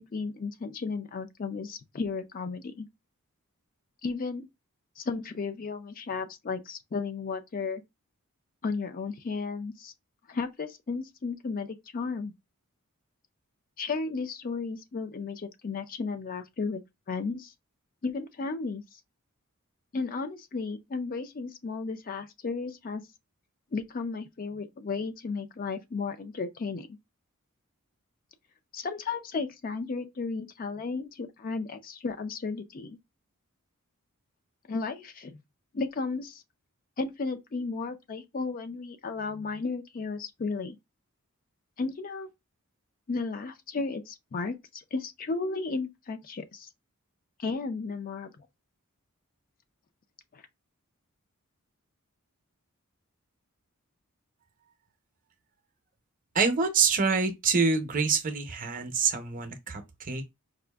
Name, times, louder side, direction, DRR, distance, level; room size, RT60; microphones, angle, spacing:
voice 1, 0.0-2.9 4.0-4.5 5.0-7.8 8.6-9.9 10.3-12.3 13.8-17.5 18.0-18.8 19.9-23.0 23.7-27.0 28.7-33.0 34.7-35.4 35.7-36.4 37.0-40.8 41.8-42.3 43.1-46.7 47.4-48.3 50.3-50.4, left 4 dB, 40° left, 0.4 m, -34 dB
voice 2, 56.3-60.3, right 5 dB, 40° right, 0.6 m, -26 dB
4.8 x 2.5 x 2.3 m
head